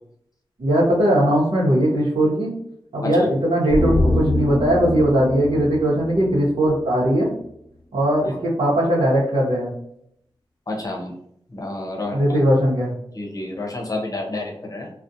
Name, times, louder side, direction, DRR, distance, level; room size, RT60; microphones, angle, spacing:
voice 1, 0.6-2.5 2.9-7.3 7.9-9.7 12.1-12.9, equal, 80° right, -8 dB, 0.8 m, -19 dB
sound 1, 3.7-7.1 7.4-7.5, left 1 dB, 5° right, 0.4 m, -25 dB
voice 2, 10.7-11.1 11.5-12.4 13.1-14.9, left 2 dB, 40° left, 0 dB, 0.7 m, -29 dB
2.4 x 2.1 x 2.6 m, 0.71 s
wide cardioid pair, 75°, 9 cm